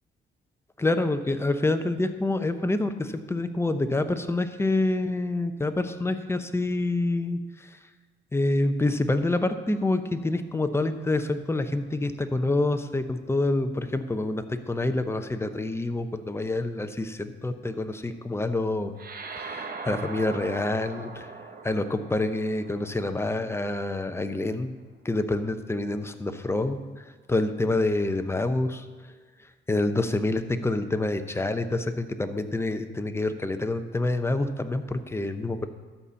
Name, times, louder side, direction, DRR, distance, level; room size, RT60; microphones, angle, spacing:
voice 1, 0.8-7.4 8.3-18.9 19.4-21.3 21.6-24.7 25.0-26.8 27.3-28.8 29.7-35.7, left 2 dB, 10° left, 9 dB, 0.7 m, -27 dB
sound 1, 19.0-23.7, right 4 dB, 50° right, 1.2 m, -40 dB
12.5 x 4.2 x 7.0 m, 1.5 s
cardioid pair, 90°, 20 cm